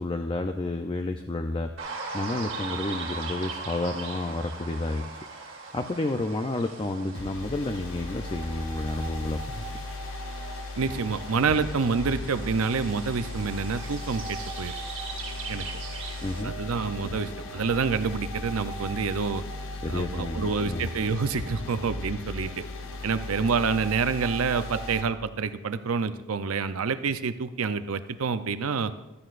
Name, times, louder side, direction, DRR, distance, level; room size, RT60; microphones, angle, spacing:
voice 1, 0.0-1.7 2.1-5.0 5.7-9.6 16.2-16.5 19.8-20.9, left 2 dB, 25° left, 6 dB, 0.4 m, -30 dB
sound 1, 1.8-16.4, right 4 dB, 60° right, 2.2 m, -40 dB
sound 2, 7.1-25.0, left 2 dB, 70° left, 0.9 m, -37 dB
voice 2, 10.8-14.7 15.5-15.6 16.4-19.4 19.9-22.5 23.0-28.9, right 5 dB, 80° right, 11 dB, 0.6 m, -27 dB
15.5 x 13.0 x 2.5 m, 1.0 s
head